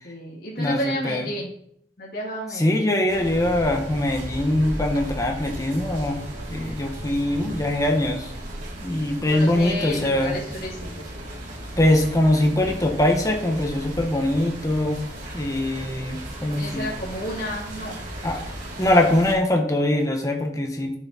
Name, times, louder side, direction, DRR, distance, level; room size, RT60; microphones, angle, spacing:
voice 1, 0.0-1.5 2.0-2.9 9.3-11.1 16.5-18.0, left 1 dB, 60° left, -3 dB, 2.3 m, -31 dB
voice 2, 0.6-1.3 2.5-6.2 6.5-8.3 8.8-10.4 11.8-15.0 15.3-16.9 18.2-18.4 18.8-21.0, left 1 dB, 20° left, 2 dB, 1.4 m, -22 dB
sound 1, 3.1-19.3, right 1 dB, 50° right, 3.3 m, -36 dB
10.0 x 7.4 x 4.2 m, 0.68 s
head